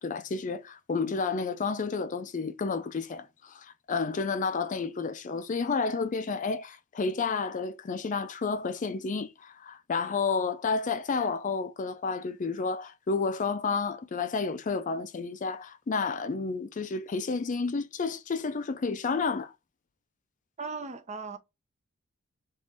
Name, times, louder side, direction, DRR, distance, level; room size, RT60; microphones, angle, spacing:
voice 1, 0.0-19.5, left 4 dB, 40° left, 0.4 m, -31 dB
voice 2, 20.6-21.4, right 4 dB, 35° right, 0.7 m, -37 dB
3.7 x 3.0 x 3.9 m
head